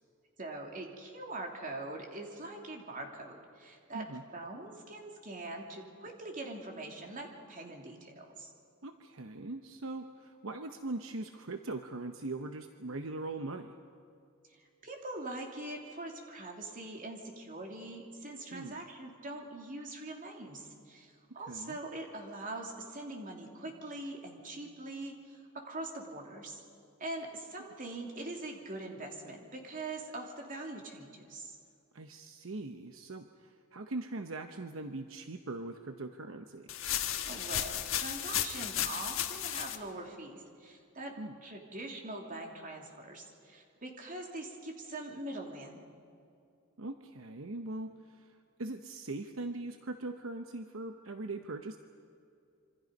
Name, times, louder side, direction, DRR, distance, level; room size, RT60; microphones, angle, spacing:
voice 1, 0.4-4.1 4.3-8.5 14.5-26.6 27.0-31.6 37.2-41.1 41.4-45.9, right 2 dB, 40° right, 1 dB, 3.0 m, -43 dB
voice 2, 8.8-13.7 18.5-18.8 21.3-21.8 31.9-36.7 41.2-41.4 46.8-51.8, right 2 dB, 70° right, 7 dB, 0.9 m, -41 dB
sound 1, 36.7-39.8, left 11 dB, 75° left, 1.4 m, -34 dB
27.0 x 25.0 x 5.3 m, 2.5 s
head